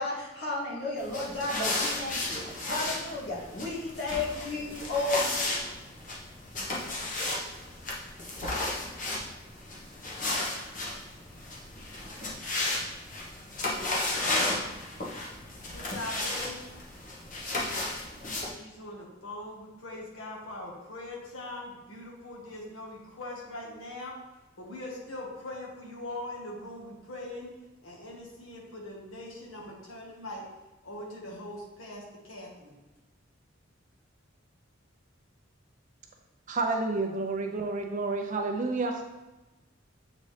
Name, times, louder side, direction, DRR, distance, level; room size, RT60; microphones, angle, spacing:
voice 1, 0.0-5.3, left 2 dB, 55° left, -5 dB, 1.9 m, -33 dB
sound 1, 1.0-18.5, left 2 dB, 40° left, 1.2 m, -34 dB
voice 2, 15.6-16.6 18.5-24.2 24.6-27.5 27.8-30.4 30.8-32.7, left 1 dB, 85° left, -3 dB, 1.6 m, -41 dB
voice 3, 36.5-39.0, right 3 dB, 40° right, 3 dB, 0.5 m, -30 dB
7.4 x 4.1 x 3.3 m, 1.1 s
head